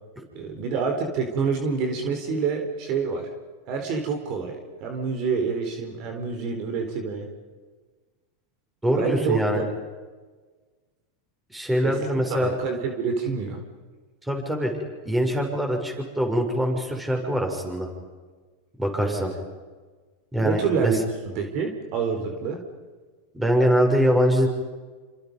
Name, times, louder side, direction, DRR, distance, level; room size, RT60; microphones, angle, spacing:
voice 1, 0.3-3.3 3.7-7.3 8.9-9.6 11.8-12.0 12.3-13.6 19.0-19.2 20.4-21.0 21.3-22.6, right 5 dB, 50° right, 4 dB, 4.2 m, -27 dB
voice 2, 8.8-9.6 11.5-12.5 14.3-14.8 15.0-17.9 18.8-19.3 20.3-20.9 23.3-24.5, equal, 10° right, 2 dB, 6.5 m, -23 dB
28.5 x 27.0 x 5.5 m, 1.4 s
hypercardioid pair, 115°, 0 cm